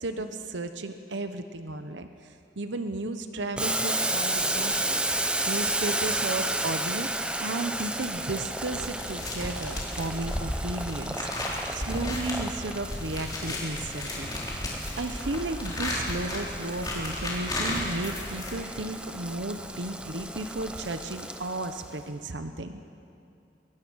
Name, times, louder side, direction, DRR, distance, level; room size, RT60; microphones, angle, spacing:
voice 1, 0.0-7.1 7.4-14.3 15.0-22.8, right 2 dB, 85° right, 8 dB, 1.0 m, -34 dB
Boiling, 3.6-22.0, right 1 dB, 5° right, 0.8 m, -33 dB
sound 1, 8.7-18.9, left 1 dB, 20° left, 4.0 m, -34 dB
23.0 x 20.5 x 6.3 m, 2.6 s
head